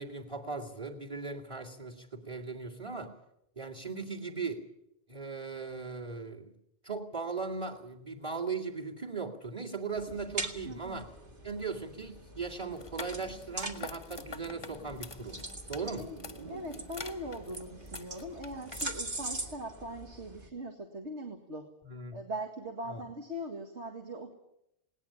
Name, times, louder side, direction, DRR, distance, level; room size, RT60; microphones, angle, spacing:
voice 1, 0.0-3.1 3.6-4.7 5.1-6.5 6.8-11.1 11.4-15.4 15.7-16.1 21.8-22.2 22.9-23.0, right 4 dB, 25° right, 5 dB, 2.3 m, -38 dB
sound 1, 9.9-20.5, right 2 dB, 45° right, 2.3 m, -43 dB
voice 2, 10.7-11.0 16.0-16.2 16.5-21.7 22.1-24.3, right 1 dB, 75° right, 4 dB, 2.2 m, -41 dB
sound 2, 12.7-18.8, left 3 dB, 25° left, 0.9 m, -47 dB
20.0 x 18.5 x 8.6 m, 0.80 s
omnidirectional pair, 1.2 m